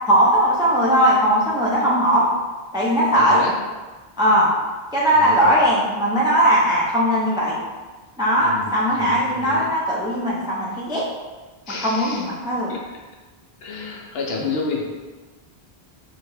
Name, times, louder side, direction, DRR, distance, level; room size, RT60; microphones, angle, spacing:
voice 1, 0.1-2.3 2.7-3.4 4.2-4.5 4.9-7.6 8.2-11.0 11.8-12.7, equal, 10° right, -5 dB, 0.3 m, -19 dB
voice 2, 3.1-3.5 5.1-5.6 8.4-9.7 11.7-12.2 12.7-12.8 13.6-14.9, left 4 dB, 70° left, -1 dB, 0.8 m, -30 dB
3.5 x 2.1 x 3.2 m, 1.3 s
omnidirectional pair, 1.1 m